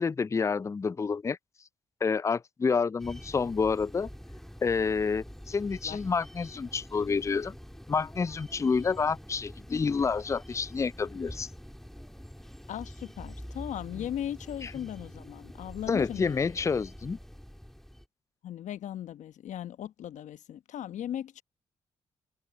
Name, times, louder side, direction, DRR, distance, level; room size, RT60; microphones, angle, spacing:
voice 1, 0.0-1.4 2.0-4.1 4.6-7.6 7.9-11.5 14.6-14.7 15.9-17.2, left 5 dB, 20° left, 0.4 m, -28 dB
sound 1, 3.0-18.1, equal, ahead, 3.4 m, -46 dB
voice 2, 12.7-16.5 18.4-21.4, left 10 dB, 65° left, 1.2 m, -38 dB
hypercardioid pair, 45°, 13 cm